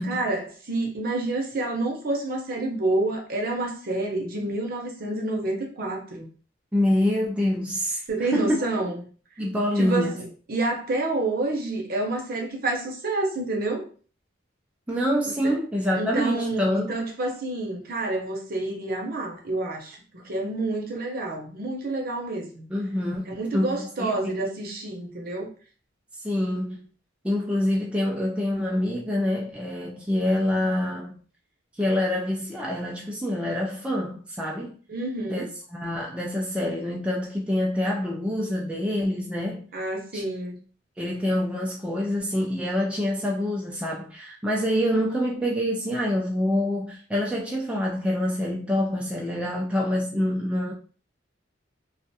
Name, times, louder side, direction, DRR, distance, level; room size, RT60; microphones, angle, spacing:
voice 1, 0.0-6.3 8.1-9.0 9.8-10.1 10.5-13.9 15.4-15.6 16.0-20.0 20.2-22.6 23.3-25.5 34.9-35.5 39.7-40.6, right 2 dB, 50° right, 0.7 m, -28 dB
voice 2, 6.7-8.6 9.4-10.3 14.9-16.9 22.7-24.4 26.2-26.9 27.2-31.1 31.8-34.7 35.3-39.6 40.1-40.2 41.0-50.7, left 1 dB, 5° right, 0.3 m, -26 dB
2.4 x 2.2 x 2.7 m
head